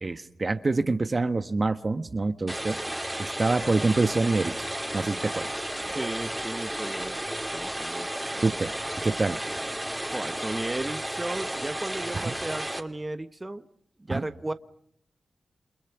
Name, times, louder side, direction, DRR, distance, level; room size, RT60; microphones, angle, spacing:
voice 1, 0.0-2.8 3.2-4.5 4.9-5.4 8.4-8.7 9.0-9.4 12.1-12.4 14.1-14.2, right 3 dB, 45° right, 1.3 m, -26 dB
sound 1, 2.5-12.8, right 1 dB, 10° right, 3.1 m, -33 dB
voice 2, 5.9-8.5 10.1-13.6 14.1-14.5, right 2 dB, 25° right, 1.3 m, -35 dB
29.0 x 27.0 x 6.0 m
supercardioid pair, 40°, 0 cm